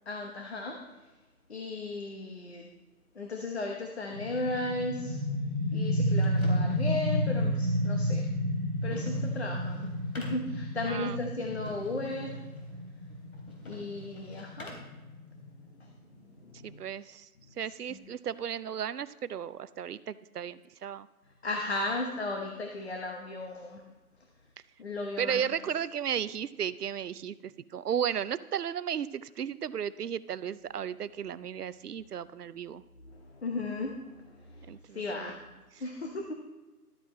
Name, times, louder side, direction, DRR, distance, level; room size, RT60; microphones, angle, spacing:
voice 1, 0.1-0.8 1.5-2.7 3.1-5.2 5.7-8.2 8.8-9.9 10.2-12.4 13.6-14.7 15.8-16.8 17.9-18.0 21.4-23.8 24.8-25.4 33.0-35.4 35.8-36.4, left 2 dB, 45° left, 2 dB, 1.1 m, -36 dB
sound 1, 4.1-15.6, equal, 5° right, 1.0 m, -31 dB
sound 2, 5.8-15.0, left 1 dB, 70° left, 3.6 m, -51 dB
voice 2, 10.9-11.2 16.6-17.3 17.6-21.1 25.2-32.8 34.7-35.4, right 8 dB, 90° right, 16 dB, 0.7 m, -34 dB
13.0 x 9.4 x 3.2 m, 1.2 s
hypercardioid pair, 175°, 45 cm